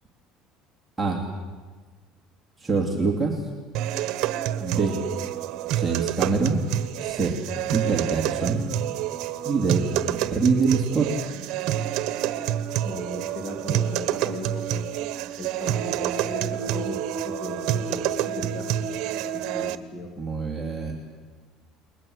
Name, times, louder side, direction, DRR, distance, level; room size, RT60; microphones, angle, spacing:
voice 1, 2.6-3.5 4.6-5.0 5.7-6.6 7.0-7.4 7.7-8.6 9.4-11.1 20.2-21.0, right 4 dB, 10° right, -2 dB, 2.9 m, -25 dB
sound 1, 3.7-19.8, right 11 dB, 60° right, 1.3 m, -28 dB
voice 2, 12.8-14.9 15.4-19.0 19.3-20.1, left 1 dB, 40° left, 3 dB, 3.0 m, -37 dB
30.0 x 21.0 x 8.1 m, 1.4 s
cardioid pair, 155°, 0 cm